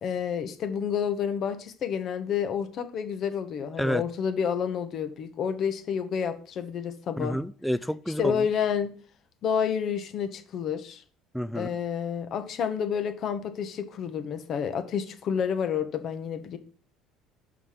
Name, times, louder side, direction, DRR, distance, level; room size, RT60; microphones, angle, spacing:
voice 1, 0.0-7.4 8.2-8.9 9.4-11.0 11.5-16.6, left 7 dB, 50° left, 1.1 m, -29 dB
voice 2, 7.2-8.5 11.3-11.7, equal, ahead, 0.4 m, -29 dB
5.4 x 4.8 x 5.7 m
supercardioid pair, 95°, 0 cm